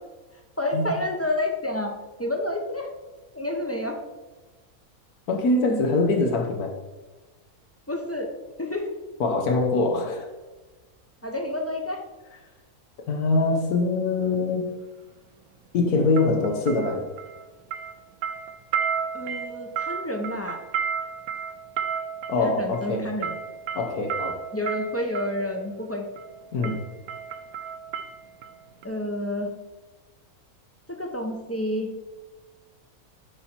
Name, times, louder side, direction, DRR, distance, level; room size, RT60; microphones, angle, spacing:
voice 1, 0.6-1.9 2.2-2.9 3.3-4.0 7.9-8.3 8.6-8.8 11.2-12.0 19.1-20.6 22.4-23.3 24.5-26.0 28.8-29.5 30.9-31.9, left 1 dB, 15° left, 2 dB, 0.6 m, -29 dB
voice 2, 5.3-6.7 9.2-10.3 13.1-14.7 15.7-17.1 22.3-23.0 23.7-24.4 26.5-26.8, left 3 dB, 80° left, 2 dB, 1.4 m, -23 dB
sound 1, 14.2-14.4 16.2-17.4 17.7-25.4 26.2-26.4 26.6-28.5 28.8-28.9, right 7 dB, 75° right, 1.1 m, -32 dB
11.0 x 4.3 x 4.4 m, 1.2 s
omnidirectional pair, 1.6 m